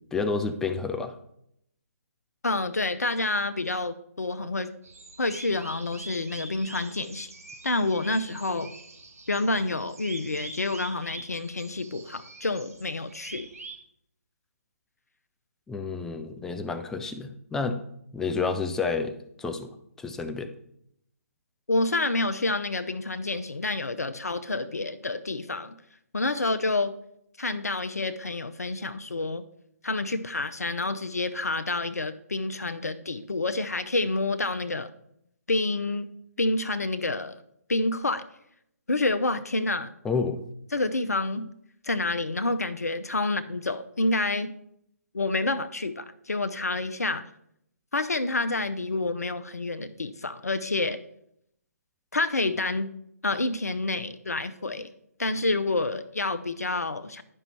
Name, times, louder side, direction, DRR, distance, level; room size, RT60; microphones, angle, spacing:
voice 1, 0.1-1.1 15.7-17.8 18.1-20.5 40.0-40.4, left 4 dB, 5° left, 8 dB, 0.4 m, -30 dB
voice 2, 2.4-4.7 5.2-7.3 7.6-8.7 9.3-13.5 21.7-25.7 26.1-26.9 27.4-29.4 29.8-34.9 35.5-36.1 36.4-37.4 37.7-38.2 38.9-39.9 40.7-41.5 41.8-44.5 45.1-47.3 47.9-51.0 52.1-52.9 53.2-54.9 55.2-57.2, left 2 dB, 75° left, 10 dB, 0.6 m, -28 dB
sound 1, 4.8-13.8, right 3 dB, 65° right, 1.4 m, -45 dB
11.0 x 5.4 x 4.3 m, 0.74 s
figure-of-eight pair, 140°, 9 cm